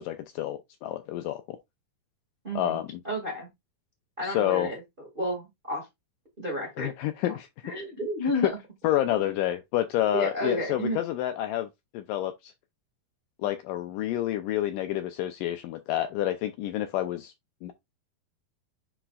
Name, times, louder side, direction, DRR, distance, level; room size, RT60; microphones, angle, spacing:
voice 1, 0.0-1.6 2.6-2.9 4.2-4.7 6.8-7.5 8.2-8.3 8.8-11.7 11.9-12.5 13.4-17.3 17.6-17.7, left 13 dB, 80° left, 2.0 m, -29 dB
voice 2, 2.4-3.5 4.2-4.8 5.1-5.8 6.4-6.9 7.2-7.4 7.6-8.6 9.1-9.4 10.1-11.0, equal, 30° right, 0.9 m, -31 dB
10.0 x 4.3 x 2.3 m
omnidirectional pair, 4.3 m